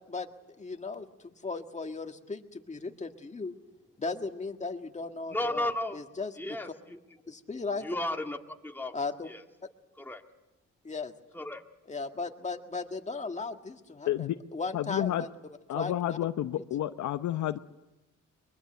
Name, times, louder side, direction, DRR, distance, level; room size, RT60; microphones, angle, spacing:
voice 1, 0.6-1.1 1.4-3.6 4.0-6.6 7.3-7.8 8.9-9.3 10.8-11.1 11.9-15.3 15.7-16.2, left 3 dB, 25° left, 5 dB, 1.8 m, -36 dB
voice 2, 5.3-6.0 6.4-7.0 7.8-8.9 9.3-9.4 10.0-10.2 11.3-11.6, left 1 dB, 5° left, 3 dB, 2.0 m, -34 dB
voice 3, 14.1-14.4 14.7-15.2 15.7-17.6, left 12 dB, 70° left, 10 dB, 0.8 m, -30 dB
23.5 x 22.5 x 7.9 m, 0.99 s
cardioid pair, 90°, 30 cm